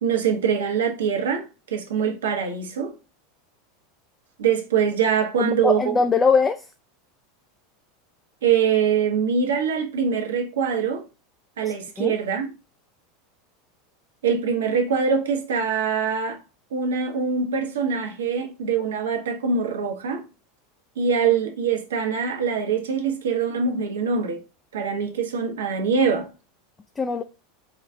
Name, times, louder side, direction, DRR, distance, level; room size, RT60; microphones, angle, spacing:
voice 1, 0.0-2.9 4.4-6.0 8.4-11.0 11.6-12.5 14.2-16.4 16.7-20.2 21.0-24.4 24.7-26.3, right 6 dB, 70° right, 0.8 m, -23 dB
voice 2, 5.4-6.7 12.0-12.2 27.0-27.2, left 5 dB, 20° left, 0.4 m, -21 dB
4.7 x 2.3 x 3.5 m
figure-of-eight pair, 85°, 0 cm